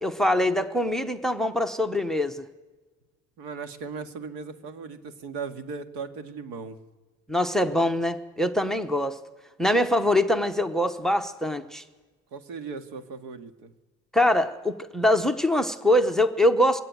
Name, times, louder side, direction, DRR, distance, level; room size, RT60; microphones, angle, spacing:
voice 1, 0.0-2.4 7.3-9.2 9.6-11.8 14.1-16.8, left 1 dB, ahead, 11 dB, 0.7 m, -23 dB
voice 2, 3.4-6.8 12.3-13.7, right 5 dB, 85° right, 8 dB, 1.9 m, -37 dB
22.0 x 17.0 x 9.4 m, 1.3 s
cardioid pair, 160°, 35 cm